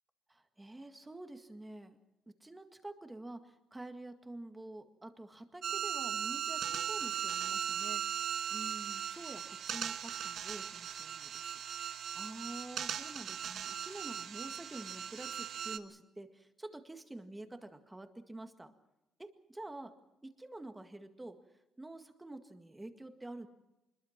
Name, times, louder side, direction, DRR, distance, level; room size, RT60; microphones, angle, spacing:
voice 1, 0.3-2.0 2.3-8.0 8.5-18.7 19.2-19.9 20.2-21.4 21.8-23.5, right 2 dB, 10° right, 7 dB, 1.9 m, -48 dB
sound 1, 5.6-15.8, right 9 dB, 55° right, 1.4 m, -38 dB
25.0 x 21.5 x 5.9 m, 0.95 s
cardioid pair, 145°, 0 cm